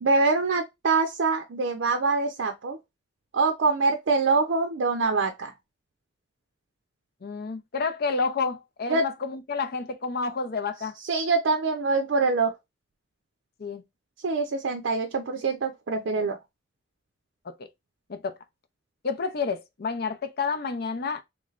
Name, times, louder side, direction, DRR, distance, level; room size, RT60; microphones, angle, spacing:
voice 1, 0.0-2.8 3.3-5.5 8.9-9.1 11.0-12.5 14.2-16.4, right 3 dB, 75° right, 0.5 m, -24 dB
voice 2, 7.2-11.0 13.6-13.8 17.5-17.6 18.1-18.3 19.0-21.2, left 4 dB, 55° left, 0.5 m, -29 dB
3.1 x 3.1 x 2.4 m
head